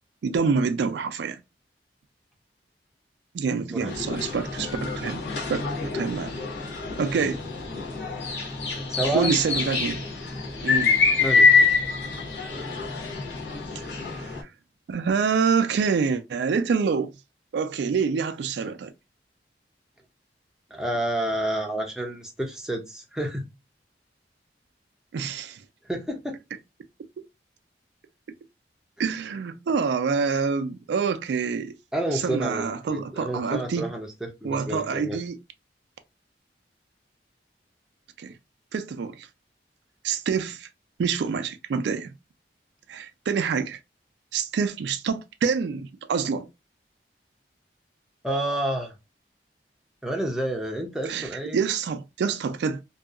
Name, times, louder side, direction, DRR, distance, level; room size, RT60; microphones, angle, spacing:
voice 1, 0.2-1.4 3.3-6.4 7.0-7.4 9.0-10.0 10.6-11.0 13.8-14.5 14.9-17.1 17.5-18.9 25.1-25.6 29.0-31.7 32.1-33.9 34.4-35.4 38.2-38.3 38.7-39.3 40.0-40.7 41.0-42.1 42.9-43.8 44.3-46.5 51.1-52.8, right 5 dB, 75° right, 0.3 m, -26 dB
sound 1, 3.9-14.4, left 4 dB, 85° left, 0.8 m, -25 dB
voice 2, 8.9-9.3 11.2-11.5 20.7-23.5 25.9-26.4 31.9-35.2 48.2-48.9 50.0-51.6, right 1 dB, 5° right, 0.5 m, -29 dB
2.7 x 2.3 x 2.3 m
head